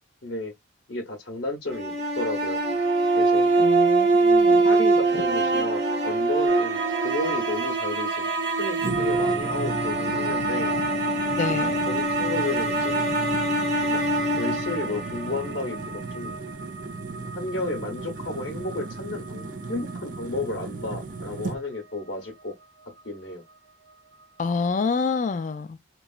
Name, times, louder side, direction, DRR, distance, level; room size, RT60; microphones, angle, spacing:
voice 1, 0.2-0.5 0.9-2.6 3.1-3.5 4.6-8.3 8.6-10.7 11.9-13.1 13.9-14.0 14.4-16.4 17.4-22.5 23.0-23.4, left 2 dB, 65° left, 0.8 m, -32 dB
sound 1, 1.7-15.8, right 2 dB, 60° right, 1.2 m, -24 dB
voice 2, 3.6-4.7 11.4-11.7 24.4-25.8, left 4 dB, 40° left, 0.3 m, -27 dB
sound 2, 6.5-23.6 23.9-24.6, right 4 dB, 75° right, 0.7 m, -36 dB
sound 3, 8.8-21.6, right 3 dB, 45° right, 0.5 m, -36 dB
3.0 x 2.3 x 2.3 m
head